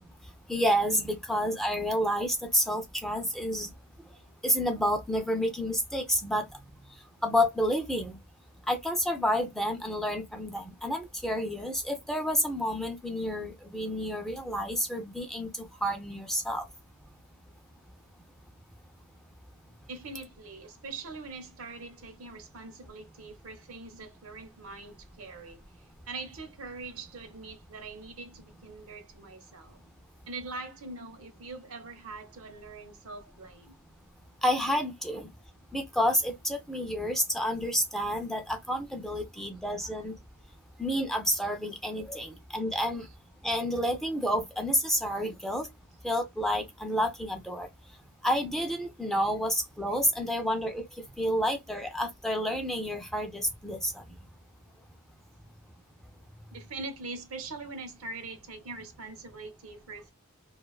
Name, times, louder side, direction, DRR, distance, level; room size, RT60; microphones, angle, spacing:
voice 1, 0.5-3.7 4.4-6.5 7.2-8.2 8.7-16.7 34.4-35.3 35.7-40.1 40.8-43.1 43.4-45.7 46.0-47.7 48.2-50.8 51.2-54.0, equal, ahead, 0.3 m, -29 dB
voice 2, 19.9-29.8 30.3-33.8 39.3-39.5 39.8-39.9 42.2-42.3 43.0-43.1 56.5-60.1, right 3 dB, 70° right, 0.7 m, -43 dB
2.4 x 2.2 x 2.3 m
head